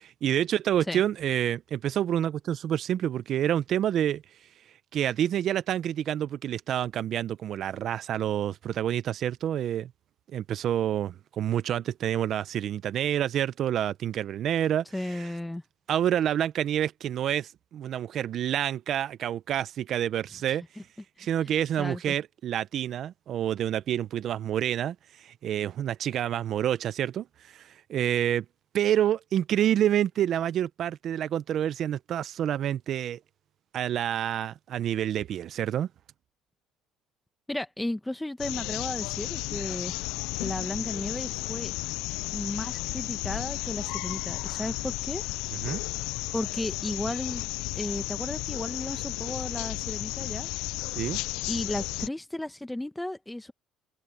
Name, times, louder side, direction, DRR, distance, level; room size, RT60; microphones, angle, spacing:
voice 1, 0.0-4.5 4.9-9.9 10.3-15.3 15.9-20.6 21.2-28.4 28.7-33.2 33.7-35.9 45.5-45.8 50.9-51.2, right 10 dB, 55° right, 0.8 m, -28 dB
voice 2, 14.9-15.6 21.8-22.1 37.5-39.9 40.4-41.7 42.3-45.2 46.3-47.4 47.7-50.5 51.5-53.5, left 1 dB, 10° left, 1.5 m, -34 dB
sound 1, 38.4-52.1, left 22 dB, 80° left, 0.3 m, -33 dB
supercardioid pair, 90°, 0 cm